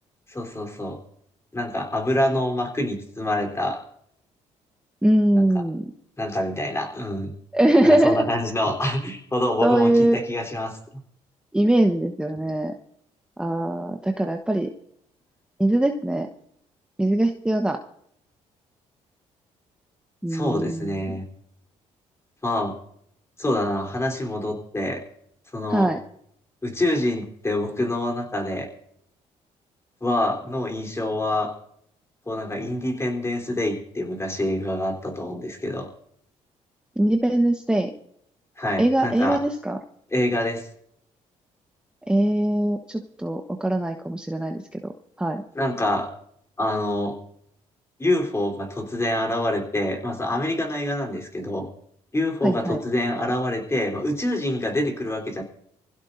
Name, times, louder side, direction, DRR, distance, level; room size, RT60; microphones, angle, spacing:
voice 1, 0.3-1.0 1.5-3.8 5.4-5.5 6.2-7.3 7.8-10.8 20.3-21.3 22.4-22.8 23.4-25.0 25.5-25.9 26.6-28.7 30.0-31.5 32.3-35.9 38.6-39.4 40.1-40.7 45.6-46.1 46.6-47.2 48.0-51.7 52.1-55.4, left 1 dB, 20° left, 2 dB, 3.6 m, -26 dB
voice 2, 5.0-5.8 7.5-8.3 9.6-10.2 11.5-12.7 13.4-14.7 15.6-16.3 17.0-17.8 20.2-20.9 25.7-26.0 37.0-37.9 38.8-39.8 42.1-44.9 45.2-45.4 52.4-52.8, right 1 dB, 5° right, 4 dB, 1.1 m, -21 dB
25.0 x 16.0 x 2.6 m, 0.69 s
supercardioid pair, 75°, 13 cm